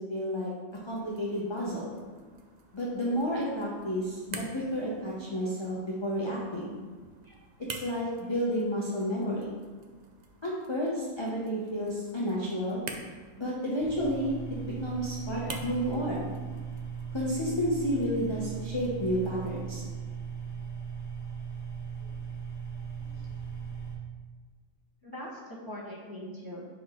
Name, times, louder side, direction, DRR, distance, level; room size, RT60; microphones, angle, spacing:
voice 1, 0.1-0.5 0.8-1.9 2.7-6.8 7.8-9.5 10.4-12.8 13.4-14.3 14.6-16.3 17.1-19.8, equal, 25° left, -5 dB, 0.7 m, -31 dB
sound 1, 0.7-19.6, right 4 dB, 60° right, 0.4 m, -49 dB
sound 2, 13.8-23.9, right 6 dB, 50° left, 1.4 m, -38 dB
voice 2, 15.3-15.6 25.0-26.7, equal, 15° right, -6 dB, 1.2 m, -42 dB
5.9 x 4.7 x 3.7 m, 1.5 s
omnidirectional pair, 1.4 m